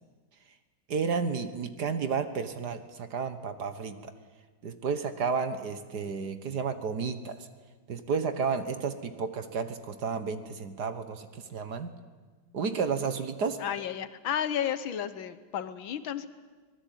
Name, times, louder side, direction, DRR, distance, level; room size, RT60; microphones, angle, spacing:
voice 1, 0.9-4.1 4.6-7.5 7.9-11.9 12.5-13.6, right 5 dB, 55° right, 10 dB, 1.8 m, -32 dB
voice 2, 13.6-16.3, left 9 dB, 70° left, 14 dB, 1.7 m, -32 dB
25.0 x 19.5 x 9.3 m, 1.4 s
omnidirectional pair, 2.3 m